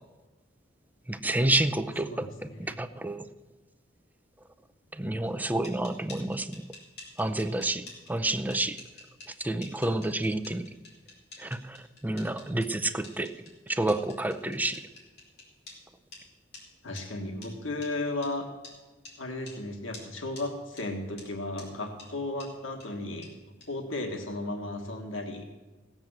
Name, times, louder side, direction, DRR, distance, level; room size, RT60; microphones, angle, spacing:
voice 1, 1.1-3.3 5.0-6.6 7.2-7.8 8.1-8.8 9.4-10.6 11.4-11.8 12.0-13.3 13.7-14.8, right 2 dB, 10° right, 9 dB, 0.6 m, -29 dB
voice 2, 2.1-2.8 16.8-18.5 19.2-23.3 23.7-25.5, left 2 dB, 90° left, 4 dB, 1.7 m, -35 dB
sound 1, 5.2-15.8 16.1-16.2 16.5-16.6 17.0-17.1 17.4-17.5 17.8-17.9 18.2-18.3 18.6-18.8 19.0-19.2 19.5-19.6 19.9-20.1 20.4-20.5 20.8-20.9 21.2-21.3 21.6-21.7 22.0-22.1 22.4-22.5 22.8-22.9 23.2-23.3 23.6-23.7, left 3 dB, 60° left, 4.6 m, -47 dB
16.5 x 7.4 x 7.8 m, 1.2 s
head